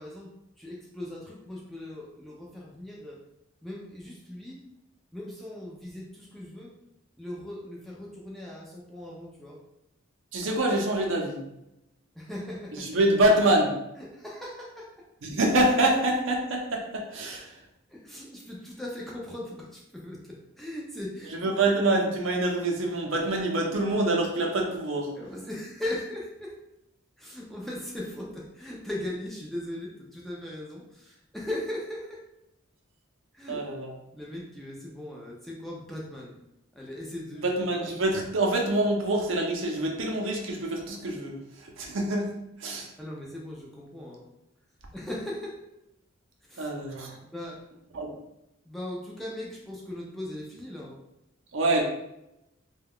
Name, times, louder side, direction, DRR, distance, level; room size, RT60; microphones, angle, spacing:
voice 1, 0.0-3.2 3.6-4.6 5.1-6.7 7.2-9.6 12.1-13.0 14.0-15.1 17.9-21.5 25.1-26.6 27.2-32.3 33.3-33.6 34.1-36.4 36.7-37.5 43.0-44.3 44.9-45.6 46.4-46.7 47.3-47.6 48.6-51.0, left 1 dB, ahead, -4 dB, 0.4 m, -39 dB
voice 2, 10.3-11.4 12.8-13.7 15.2-17.6 21.4-25.1 33.5-33.9 37.4-42.3 42.6-42.9 46.6-47.2 47.9-48.1 51.5-51.8, right 1 dB, 70° right, 1 dB, 0.6 m, -26 dB
2.3 x 2.2 x 3.5 m, 0.86 s
head